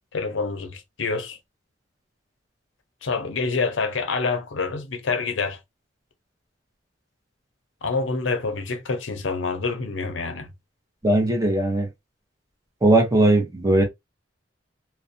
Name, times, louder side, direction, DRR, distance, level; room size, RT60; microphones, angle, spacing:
voice 1, 0.1-1.4 3.0-5.6 7.8-10.5, left 4 dB, 85° left, 0.6 m, -27 dB
voice 2, 11.0-11.9 12.8-13.8, right 2 dB, 20° right, 0.8 m, -19 dB
2.4 x 2.1 x 2.6 m
head